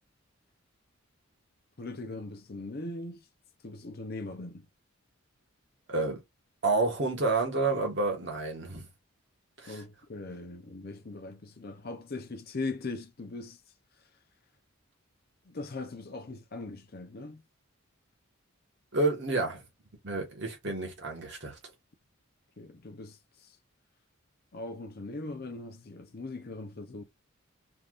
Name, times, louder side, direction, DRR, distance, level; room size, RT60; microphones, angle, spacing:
voice 1, 1.8-3.2 3.6-4.7 9.7-13.6 15.5-17.4 22.6-23.2 24.5-27.0, left 3 dB, 45° left, 0.6 m, -40 dB
voice 2, 5.9-6.2 6.6-8.9 9.6-9.8 18.9-19.6 20.0-21.6, right 3 dB, 55° right, 1.4 m, -29 dB
3.4 x 2.7 x 2.4 m
head